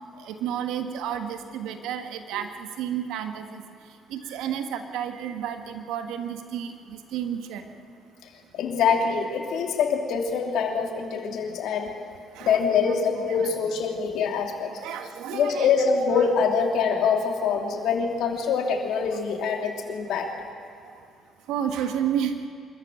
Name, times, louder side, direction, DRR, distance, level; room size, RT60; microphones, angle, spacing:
voice 1, 0.2-3.6 4.1-7.6 12.3-12.9 13.3-13.5 14.6-15.7 16.1-16.2 19.4-19.6 21.5-22.5, right 9 dB, 75° right, 7 dB, 1.5 m, -31 dB
voice 2, 8.5-11.9 12.4-14.7 15.3-20.3, left 6 dB, 70° left, 2 dB, 2.9 m, -24 dB
25.5 x 14.0 x 9.2 m, 2.4 s
hypercardioid pair, 50°, 0 cm